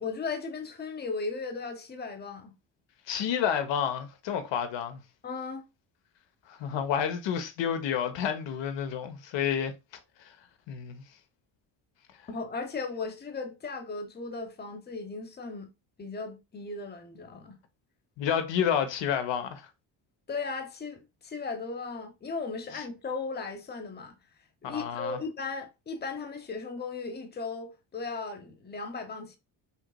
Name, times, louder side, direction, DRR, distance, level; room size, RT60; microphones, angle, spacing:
voice 1, 0.0-2.5 5.2-5.6 12.3-15.7 16.0-17.6 20.3-24.2 24.6-29.4, left 4 dB, 20° left, 0.9 m, -36 dB
voice 2, 3.1-5.0 6.5-9.7 10.2-10.3 10.7-11.0 18.2-19.7 24.6-25.2, left 8 dB, 65° left, 1.1 m, -30 dB
5.7 x 2.9 x 2.3 m
supercardioid pair, 75°, 47 cm